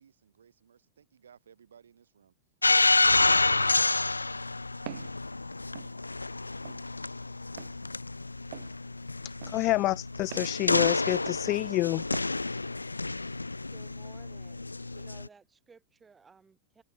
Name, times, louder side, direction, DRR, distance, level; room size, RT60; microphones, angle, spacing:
voice 1, 0.0-2.3, right 7 dB, 70° right, 6.0 m, -59 dB
sound 1, 2.6-15.3, left 3 dB, 80° left, 0.9 m, -29 dB
Walk footsteps, 4.9-5.1 5.7-5.9 6.6-6.8 7.6-7.7 8.5-8.7 9.4-9.6 10.3-10.5 11.3-11.5 12.1-12.3, right 18 dB, 50° right, 0.6 m, -43 dB
voice 2, 9.5-12.0, left 18 dB, 40° left, 1.0 m, -28 dB
voice 3, 13.7-14.6 14.9-16.8, right 5 dB, 15° right, 7.3 m, -57 dB
figure-of-eight pair, 90°, 0 cm